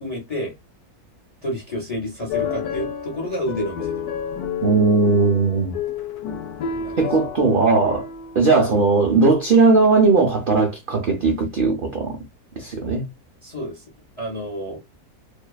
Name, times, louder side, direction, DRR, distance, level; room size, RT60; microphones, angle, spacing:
voice 1, 0.0-0.5 1.4-4.1 6.7-7.0 13.4-13.8 14.2-14.8, equal, 40° left, 0.5 m, -29 dB
sound 1, 2.3-8.7, left 7 dB, 85° left, 1.1 m, -30 dB
voice 2, 4.6-5.7 7.0-8.1 8.4-12.2 12.6-13.1, right 3 dB, 80° right, 0.4 m, -18 dB
2.7 x 2.1 x 2.3 m
omnidirectional pair, 1.6 m